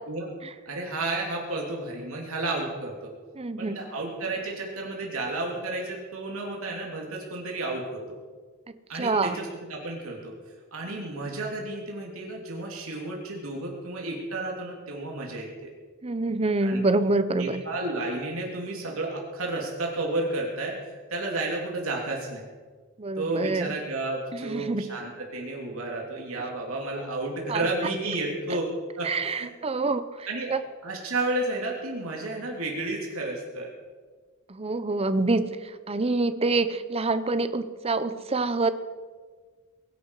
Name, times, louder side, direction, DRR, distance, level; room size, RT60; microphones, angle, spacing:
voice 1, 0.7-3.1 3.6-8.2 8.9-10.3 10.7-15.7 16.6-16.8 17.4-20.7 21.1-22.4 23.2-28.7 29.0-29.5 30.3-30.5 30.8-33.7, right 2 dB, 70° right, -1 dB, 3.0 m, -32 dB
voice 2, 3.3-3.8 8.7-9.4 16.0-17.6 23.0-23.7 24.3-24.8 27.5-27.7 29.0-30.6 34.5-38.7, right 3 dB, 30° right, 12 dB, 0.8 m, -26 dB
22.5 x 11.0 x 4.8 m, 1.5 s
head